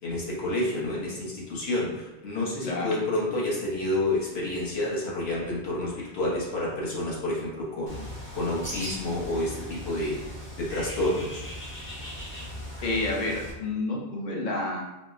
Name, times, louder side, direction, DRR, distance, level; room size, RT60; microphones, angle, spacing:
voice 1, 0.0-11.4, left 1 dB, 70° left, -5 dB, 1.1 m, -29 dB
Bird, 7.9-13.5, equal, 15° left, 0.5 m, -39 dB
voice 2, 12.8-14.8, left 2 dB, 50° left, -2 dB, 0.7 m, -29 dB
4.1 x 2.0 x 2.4 m, 1.0 s
omnidirectional pair, 1.1 m